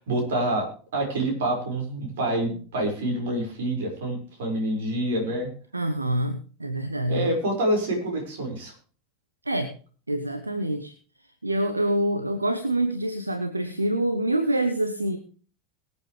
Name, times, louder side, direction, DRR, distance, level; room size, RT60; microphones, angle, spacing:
voice 1, 0.0-5.5 7.1-8.7, right 1 dB, 65° right, 2 dB, 5.6 m, -27 dB
voice 2, 5.7-7.3 9.5-9.7 10.1-10.9 11.4-15.2, right 1 dB, 85° right, 9 dB, 1.1 m, -26 dB
22.5 x 8.4 x 3.4 m, 0.40 s
figure-of-eight pair, 80°, 0 cm